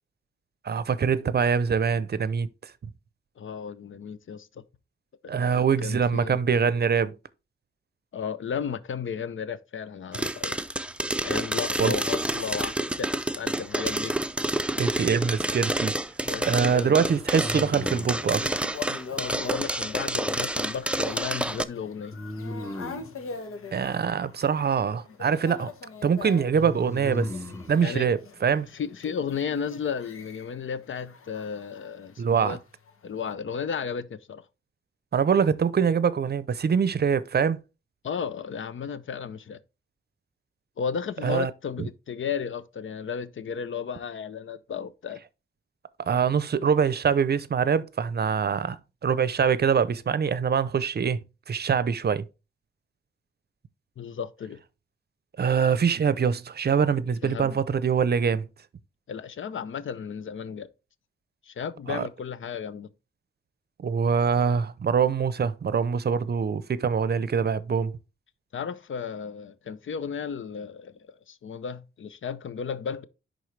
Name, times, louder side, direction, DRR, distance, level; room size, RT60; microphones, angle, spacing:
voice 1, 0.6-2.7 5.3-7.1 11.8-12.0 14.8-15.9 16.5-18.7 23.7-25.7 26.0-27.3 27.7-28.7 32.2-32.6 35.1-37.6 41.2-41.5 41.8-41.9 46.0-51.2 51.5-52.2 55.4-58.5 61.9-62.0 63.8-67.9, right 6 dB, 50° right, 0.6 m, -24 dB
voice 2, 3.4-4.6 5.2-6.4 8.1-10.6 11.2-14.1 16.3-16.9 18.9-22.2 27.8-28.1 28.7-32.6 33.0-34.4 38.0-39.6 40.8-45.2 54.0-54.6 57.2-57.6 59.1-60.7 61.4-62.9 68.5-73.0, left 6 dB, 65° left, 0.7 m, -34 dB
sound 1, 10.1-21.6, right 1 dB, 5° right, 0.4 m, -28 dB
sound 2, 14.6-15.3 17.4-18.3 22.1-23.2 26.5-27.8, left 1 dB, 10° left, 0.8 m, -36 dB
sound 3, 16.2-32.4 32.9-33.3, left 5 dB, 90° left, 1.2 m, -43 dB
10.5 x 3.9 x 3.2 m
wide cardioid pair, 95°, 21 cm